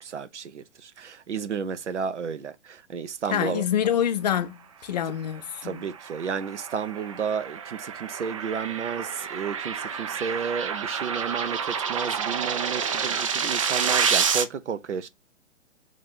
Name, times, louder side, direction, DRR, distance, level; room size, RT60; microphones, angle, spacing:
voice 1, 0.0-3.6 5.6-15.1, right 6 dB, 70° right, 0.8 m, -32 dB
voice 2, 3.3-5.8, left 9 dB, 35° left, 0.6 m, -26 dB
sound 1, 5.6-14.4, right 6 dB, 30° right, 0.4 m, -29 dB
3.1 x 2.6 x 4.2 m
figure-of-eight pair, 125°, 37 cm